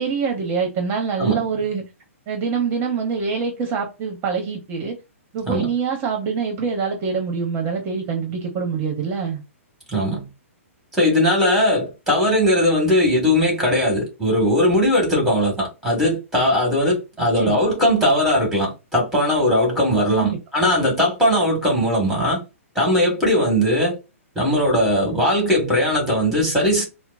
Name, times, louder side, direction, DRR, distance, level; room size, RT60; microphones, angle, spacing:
voice 1, 0.0-1.8 2.3-4.9 5.3-9.4 17.3-17.6 20.1-20.4, right 5 dB, 30° right, 1.0 m, -25 dB
voice 2, 9.9-10.3 10.9-22.4 22.8-24.0 24.4-26.8, equal, ahead, 1.9 m, -19 dB
4.4 x 2.1 x 2.6 m
hypercardioid pair, 125°, 8 cm